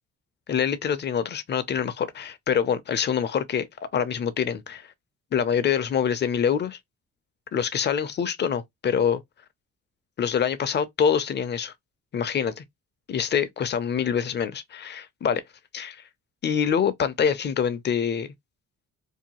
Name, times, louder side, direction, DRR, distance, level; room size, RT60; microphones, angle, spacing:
voice 1, 0.5-4.9 5.3-6.8 7.5-9.2 10.2-11.7 12.1-12.6 13.1-15.4 15.7-16.0 16.4-18.3, left 7 dB, 35° left, 0.5 m, -25 dB
2.7 x 2.2 x 2.9 m
cardioid pair, 90°, 30 cm